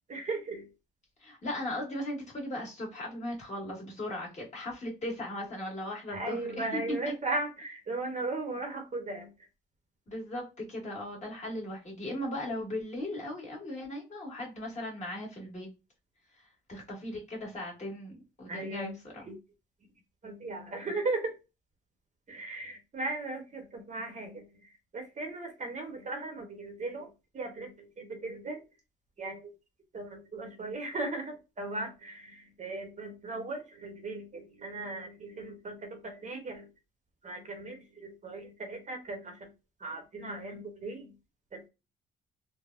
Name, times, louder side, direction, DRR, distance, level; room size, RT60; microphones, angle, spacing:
voice 1, 0.1-0.7 6.1-9.3 18.5-19.4 20.2-21.4 22.3-28.6 29.2-29.6 29.9-36.7 37.2-39.5 39.8-41.2 41.5-41.7, right 2 dB, 35° right, 4 dB, 0.9 m, -37 dB
voice 2, 1.2-6.6 7.0-7.1 10.1-15.7 16.7-19.2, left 1 dB, 35° left, -3 dB, 1.5 m, -38 dB
3.3 x 2.1 x 2.4 m, 0.27 s
cardioid pair, 90°, 20 cm